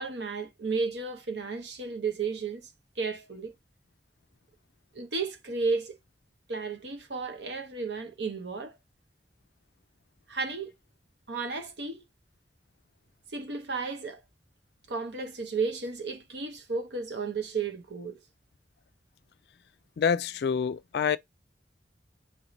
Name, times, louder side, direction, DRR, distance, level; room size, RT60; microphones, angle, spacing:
voice 1, 0.0-2.7 3.0-3.5 4.9-6.0 6.5-8.8 10.3-10.7 11.3-12.0 13.3-14.2 14.9-18.2, right 4 dB, 80° right, 0.9 m, -33 dB
voice 2, 20.0-21.2, left 6 dB, 65° left, 0.3 m, -27 dB
4.6 x 3.1 x 2.6 m
head